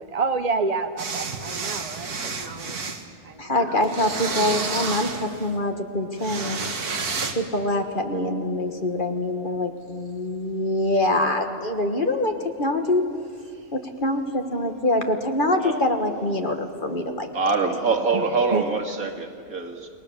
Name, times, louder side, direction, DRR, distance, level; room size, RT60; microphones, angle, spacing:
voice 1, 0.0-2.1 2.4-4.7 18.1-18.2 18.5-18.6, right 4 dB, 40° right, 8 dB, 0.6 m, -29 dB
sound 1, 1.0-3.0 3.8-5.5 6.2-7.3, right 4 dB, 85° right, 2.2 m, -30 dB
voice 2, 3.4-6.7 7.3-12.3 12.6-13.0 13.7-17.3, left 1 dB, 35° left, 5 dB, 1.7 m, -24 dB
voice 3, 17.3-19.9, right 4 dB, 65° right, 4 dB, 2.6 m, -24 dB
30.0 x 20.5 x 7.3 m, 2.2 s
omnidirectional pair, 1.6 m